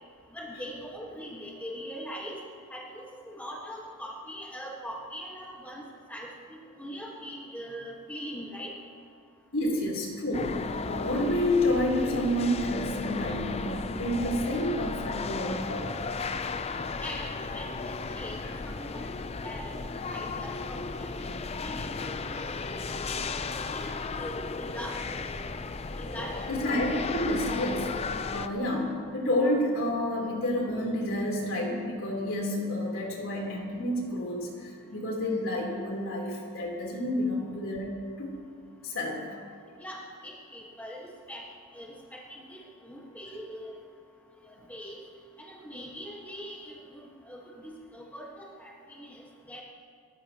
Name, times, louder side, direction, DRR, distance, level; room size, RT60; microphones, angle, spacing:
voice 1, 0.3-2.4 2.7-5.8 6.1-8.7 17.0-19.2 19.4-19.7 20.1-22.7 23.1-23.9 24.2-25.4 26.0-26.5 39.8-41.4 41.7-43.8 44.5-45.0 45.4-49.6, equal, 5° left, -3 dB, 1.6 m, -42 dB
voice 2, 9.5-10.6 10.9-16.1 18.4-18.5 26.5-37.9 38.2-38.4 38.8-39.4, left 1 dB, 65° left, -2 dB, 3.7 m, -29 dB
sound 1, 10.3-28.5, left 4 dB, 30° left, 0.5 m, -35 dB
29.5 x 14.5 x 3.0 m, 2.1 s
head